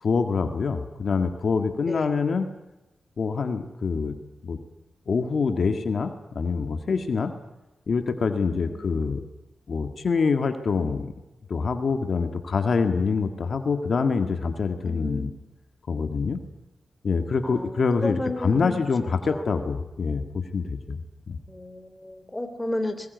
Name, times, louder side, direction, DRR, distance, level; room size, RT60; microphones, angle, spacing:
voice 1, 0.0-2.5 3.2-4.2 4.4-4.6 5.1-7.3 7.9-9.2 9.7-11.1 11.5-15.3 15.9-16.4 17.0-21.0 21.3-21.4, left 5 dB, 65° left, 6 dB, 1.9 m, -25 dB
voice 2, 1.8-2.3 8.5-9.1 14.8-15.4 17.4-18.7 19.0-19.4 21.5-23.1, left 1 dB, 15° left, 8 dB, 3.1 m, -33 dB
21.0 x 21.0 x 9.5 m, 1.0 s
wide cardioid pair, 100°, 0 cm